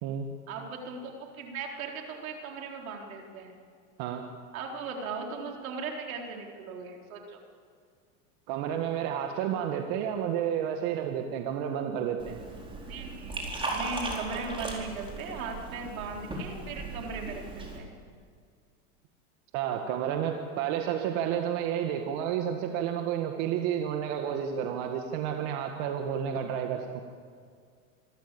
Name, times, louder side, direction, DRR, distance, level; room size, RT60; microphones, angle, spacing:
voice 1, 0.5-3.5 4.5-7.4 12.9-17.9, right 4 dB, 85° right, 1 dB, 4.2 m, -38 dB
voice 2, 8.5-12.4 19.5-27.0, right 9 dB, 60° right, 4 dB, 1.9 m, -31 dB
Liquid, 12.2-17.8, right 2 dB, 15° right, 4.6 m, -37 dB
26.5 x 13.5 x 8.5 m, 2.1 s
supercardioid pair, 120°, 41 cm